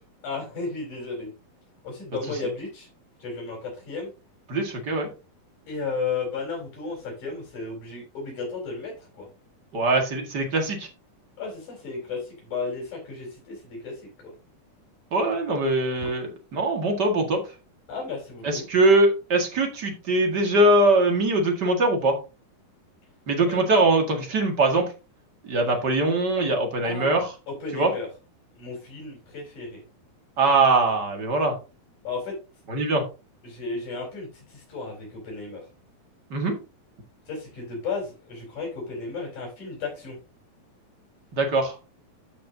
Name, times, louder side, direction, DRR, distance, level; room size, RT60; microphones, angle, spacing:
voice 1, 0.2-1.3 1.8-2.9 3.2-4.1 5.7-9.3 11.4-14.3 17.9-18.7 23.5-23.6 26.8-27.2 27.5-28.1 28.6-29.8 32.0-32.4 33.4-35.6 37.3-40.2, left 4 dB, 60° left, -3 dB, 5.4 m, -34 dB
voice 2, 4.5-5.1 9.7-10.9 15.1-17.4 18.4-22.2 23.3-24.9 25.4-27.3 27.7-27.9 30.4-31.6 32.7-33.0 36.3-36.6 41.3-41.8, right 2 dB, 35° right, 2 dB, 1.9 m, -22 dB
14.0 x 5.4 x 2.8 m, 0.30 s
omnidirectional pair, 4.1 m